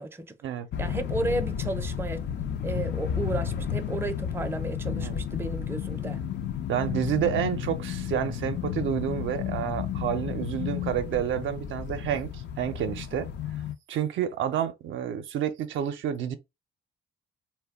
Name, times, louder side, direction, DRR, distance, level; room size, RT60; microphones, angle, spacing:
voice 1, 0.0-0.3 0.8-2.3 2.6-6.2, right 2 dB, 10° right, 0.4 m, -33 dB
sound 1, 0.7-13.7, left 9 dB, 60° left, 0.5 m, -32 dB
voice 2, 6.7-12.3 12.6-13.3 13.9-16.3, right 9 dB, 75° right, 0.5 m, -29 dB
2.1 x 2.1 x 3.5 m
cardioid pair, 90°, 20 cm